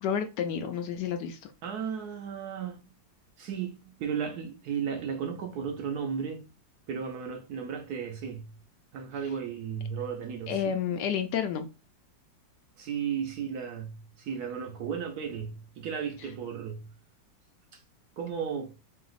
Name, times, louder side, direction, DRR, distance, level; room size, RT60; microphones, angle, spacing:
voice 1, 0.0-1.4 10.5-11.7, left 8 dB, 75° left, 1.1 m, -30 dB
voice 2, 1.6-2.8 3.4-6.4 6.9-8.6 8.9-10.7 12.8-16.9 17.7-17.8 18.2-18.7, right 7 dB, 70° right, 1.0 m, -35 dB
3.3 x 2.9 x 4.0 m
omnidirectional pair, 2.1 m